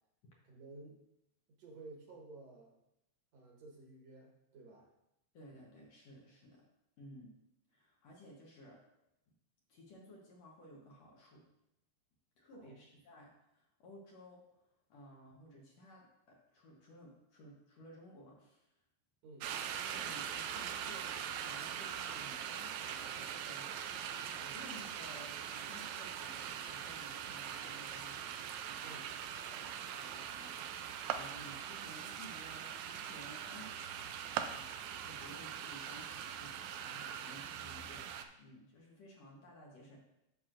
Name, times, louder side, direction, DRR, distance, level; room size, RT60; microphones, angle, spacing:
voice 1, 0.4-1.0 1.6-2.7 3.3-4.9 12.5-12.8 19.2-19.5 28.8-29.0, right 3 dB, 65° right, -1 dB, 2.3 m, -53 dB
voice 2, 5.3-6.7 7.0-7.3 7.7-8.8 9.7-11.4 12.4-14.6 14.9-18.7 19.9-29.7 29.9-38.1 38.4-40.0, equal, 65° left, -2 dB, 2.1 m, -56 dB
sound 1, 19.4-38.2, right 9 dB, 80° right, 1.8 m, -42 dB
10.5 x 6.2 x 2.5 m, 0.85 s
omnidirectional pair, 3.3 m